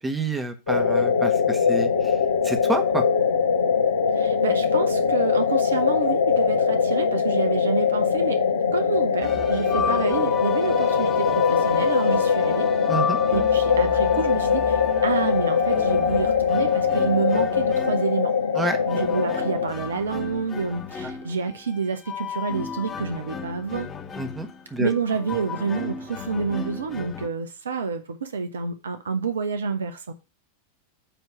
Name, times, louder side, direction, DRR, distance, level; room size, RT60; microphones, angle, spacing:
voice 1, 0.0-1.9 2.4-3.0 12.9-13.2 18.5-18.8 24.2-24.9, right 2 dB, 10° right, 1.2 m, -28 dB
sound 1, 0.7-19.7, left 6 dB, 75° left, 0.8 m, -22 dB
voice 2, 4.1-12.7 13.3-18.3 18.6-23.9 24.8-30.1, right 5 dB, 70° right, 0.9 m, -28 dB
sound 2, 9.2-27.3, left 6 dB, 20° left, 1.3 m, -33 dB
9.1 x 3.1 x 6.1 m
figure-of-eight pair, 90°, 0 cm